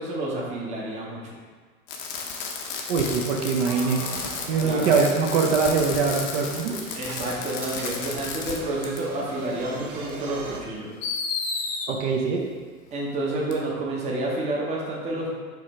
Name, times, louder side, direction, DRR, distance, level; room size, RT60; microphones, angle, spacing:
voice 1, 0.0-1.3 4.6-4.9 6.9-10.9 12.9-15.3, right 2 dB, 15° right, -3 dB, 0.7 m, -29 dB
Fireworks, 1.9-8.6 8.8-9.0 10.1-10.2 11.0-11.9 13.5-13.6, left 5 dB, 50° left, 0.8 m, -32 dB
voice 2, 2.9-4.0 4.5-6.8 11.9-12.4, right 5 dB, 55° right, 1 dB, 0.7 m, -23 dB
sound 1, 3.7-10.6, right 2 dB, 90° right, 0.8 m, -40 dB
4.9 x 2.5 x 4.2 m, 1.5 s
hypercardioid pair, 120°, 43 cm